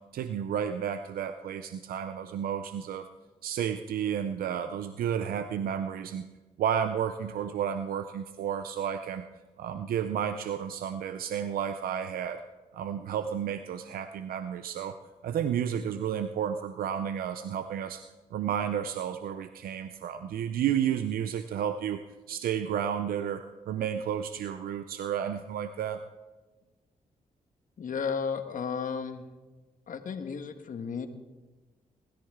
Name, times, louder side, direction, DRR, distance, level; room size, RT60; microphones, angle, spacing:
voice 1, 0.1-3.1 3.4-6.3 6.6-9.3 9.6-12.4 12.7-14.9 15.2-18.0 18.3-22.0 22.3-26.0, right 9 dB, 90° right, 9 dB, 0.6 m, -32 dB
voice 2, 27.8-29.3 29.9-31.1, left 6 dB, 65° left, 8 dB, 1.4 m, -33 dB
19.5 x 13.5 x 3.7 m, 1.2 s
cardioid pair, 70°, 15 cm